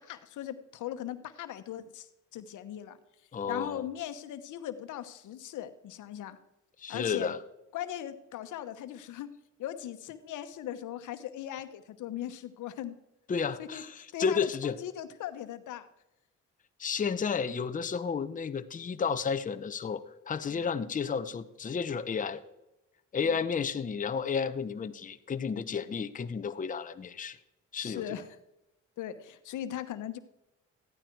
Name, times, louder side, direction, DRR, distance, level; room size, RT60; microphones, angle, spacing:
voice 1, 0.1-2.1 2.3-3.0 3.5-6.4 6.9-7.3 7.7-9.3 9.6-12.9 13.6-13.8 14.1-15.9 20.5-20.7 23.2-23.3 25.6-25.8 27.7-28.4 29.0-30.2, left 11 dB, 80° left, 10 dB, 1.0 m, -39 dB
voice 2, 3.3-3.8 6.8-7.4 13.3-14.8 16.8-22.4 23.1-27.4 27.7-28.2, left 6 dB, 25° left, 10 dB, 0.7 m, -32 dB
15.0 x 11.0 x 4.6 m, 0.94 s
cardioid pair, 90°, 30 cm